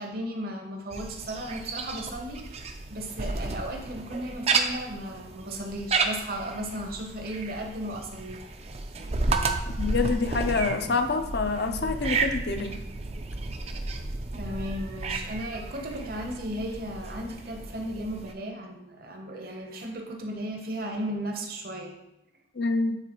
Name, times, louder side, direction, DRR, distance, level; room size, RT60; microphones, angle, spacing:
voice 1, 0.0-8.4 14.4-22.0, right 1 dB, 50° right, 3 dB, 0.9 m, -35 dB
sound 1, 0.9-18.3, right 3 dB, 35° right, 0.4 m, -32 dB
voice 2, 9.7-12.8 22.5-23.0, left 4 dB, 60° left, 7 dB, 0.6 m, -27 dB
8.9 x 3.9 x 3.0 m, 0.89 s
head